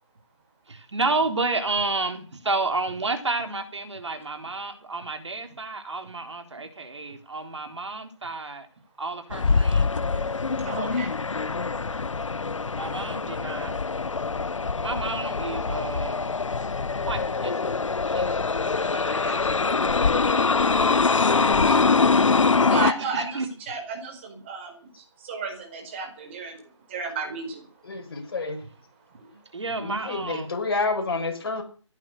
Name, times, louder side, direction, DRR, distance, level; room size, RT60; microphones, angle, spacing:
voice 1, 0.7-8.7 9.0-10.5 12.8-13.8 14.8-16.4 17.0-18.4 18.7-19.0 19.7-21.7 23.0-23.5 29.5-30.5, right 3 dB, 65° right, 7 dB, 3.8 m, -31 dB
sound 1, 9.3-22.9, left 4 dB, 80° left, 0.7 m, -24 dB
voice 2, 10.7-11.1 18.8-19.6 21.3-21.8 22.6-26.6 26.9-27.7 29.2-29.4, right 4 dB, 25° right, 4 dB, 4.5 m, -34 dB
voice 3, 27.8-28.6 29.8-31.6, left 3 dB, 50° left, 4 dB, 5.8 m, -29 dB
16.5 x 11.5 x 6.6 m, 0.41 s
figure-of-eight pair, 160°, 16 cm